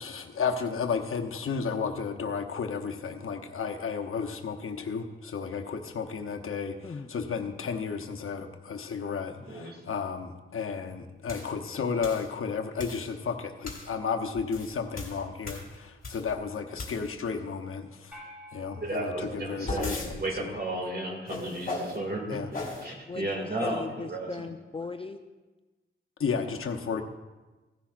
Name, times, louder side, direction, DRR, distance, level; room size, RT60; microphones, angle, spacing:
voice 1, 0.0-6.8 7.1-18.1 18.5-20.6 22.3-22.5 23.6-23.7 26.2-27.0, left 5 dB, 85° left, 4 dB, 0.8 m, -33 dB
voice 2, 9.5-9.8 18.7-22.4 22.8-24.5, right 1 dB, 50° right, 0 dB, 2.1 m, -34 dB
Broom Medley, 11.3-11.5 12.0-12.3 12.8-13.1 13.6-13.9 14.4-16.3 16.8-17.3 19.2-20.1 21.3-22.0 22.5-22.9, left 2 dB, 40° left, 1.9 m, -37 dB
sound 1, 18.1-20.6, left 1 dB, 5° right, 3.3 m, -51 dB
voice 3, 23.1-25.2, left 4 dB, 25° left, 6 dB, 0.4 m, -38 dB
16.0 x 10.0 x 2.5 m, 1.2 s
wide cardioid pair, 125°, 21 cm